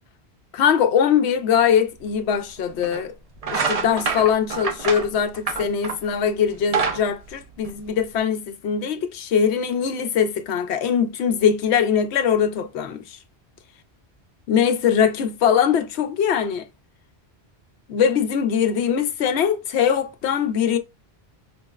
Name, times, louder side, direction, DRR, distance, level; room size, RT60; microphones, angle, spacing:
voice 1, 0.5-3.1 3.5-13.2 14.5-16.7 17.9-20.8, left 7 dB, 80° left, 0.8 m, -21 dB
sound 1, 2.1-2.2 2.8-3.0 3.4-6.1 6.5-8.2, right 5 dB, 45° right, 0.6 m, -26 dB
5.0 x 2.0 x 2.2 m
omnidirectional pair, 1.1 m